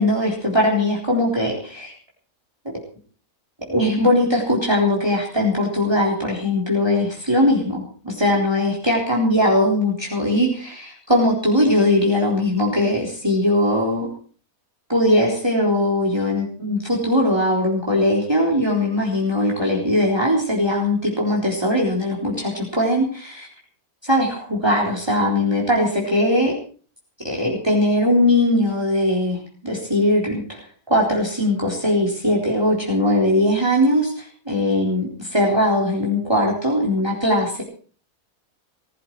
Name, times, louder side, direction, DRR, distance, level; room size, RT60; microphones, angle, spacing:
voice 1, 0.0-1.9 3.7-14.1 14.9-23.5 24.0-26.6 27.2-29.4 29.6-30.6 30.9-37.6, left 1 dB, 15° right, -2 dB, 3.9 m, -20 dB
20.0 x 14.0 x 4.7 m, 0.42 s
omnidirectional pair, 1.6 m